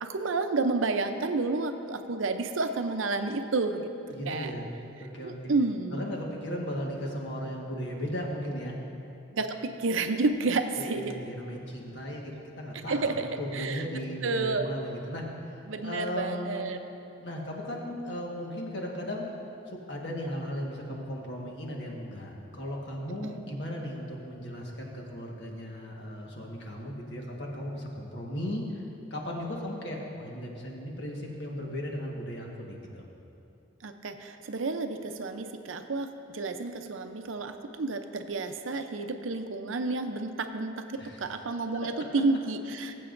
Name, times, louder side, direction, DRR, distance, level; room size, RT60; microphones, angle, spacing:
voice 1, 0.0-3.9 4.3-4.5 5.2-6.0 9.3-11.1 12.9-13.8 14.2-14.7 15.7-16.8 33.8-42.9, right 3 dB, 80° right, 7 dB, 0.6 m, -30 dB
voice 2, 4.1-4.7 5.0-5.5 5.9-8.8 10.7-16.6 17.2-19.3 19.7-28.8 29.1-32.8 41.0-41.3, equal, 60° left, -1 dB, 1.5 m, -36 dB
20.5 x 7.7 x 2.6 m, 2.8 s
head